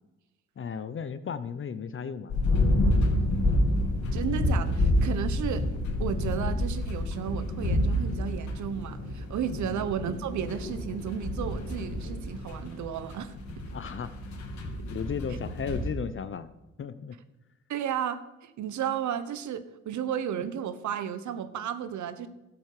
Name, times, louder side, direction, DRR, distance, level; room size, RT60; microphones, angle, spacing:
voice 1, 0.6-2.3 2.7-2.8 9.6-9.8 13.7-14.2 14.9-16.5 16.8-17.2, left 6 dB, 40° left, 12 dB, 0.8 m, -35 dB
sound 1, 2.3-15.9, left 1 dB, 70° left, 3.0 m, -28 dB
voice 2, 4.1-5.6 6.0-13.3 17.7-22.3, right 8 dB, 70° right, 12 dB, 1.3 m, -33 dB
13.0 x 8.3 x 6.6 m, 0.99 s
cardioid pair, 90°, 30 cm